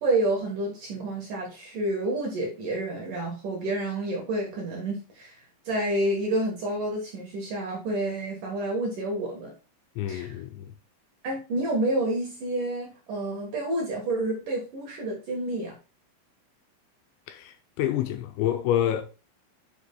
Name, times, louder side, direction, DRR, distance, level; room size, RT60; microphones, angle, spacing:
voice 1, 0.0-9.5 10.1-10.4 11.2-15.7, right 1 dB, 60° right, 2.3 m, -29 dB
voice 2, 10.0-10.8 17.3-19.0, left 11 dB, 80° left, 2.7 m, -28 dB
9.4 x 5.0 x 2.3 m
omnidirectional pair, 5.4 m